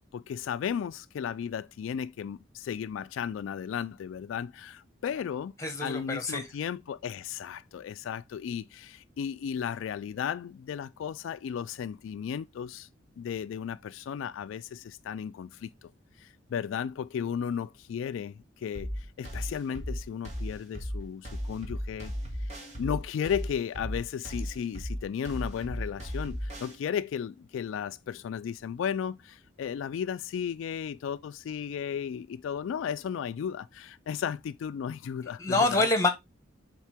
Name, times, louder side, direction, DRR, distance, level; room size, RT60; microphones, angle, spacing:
voice 1, 0.1-5.5 5.8-12.9 13.2-15.9 16.2-22.1 22.4-35.9, left 8 dB, 80° left, 0.3 m, -35 dB
voice 2, 5.6-6.5 35.4-36.1, left 2 dB, 15° left, 1.3 m, -26 dB
sound 1, 18.7-26.7, equal, 35° right, 1.8 m, -36 dB
7.3 x 3.7 x 3.5 m
head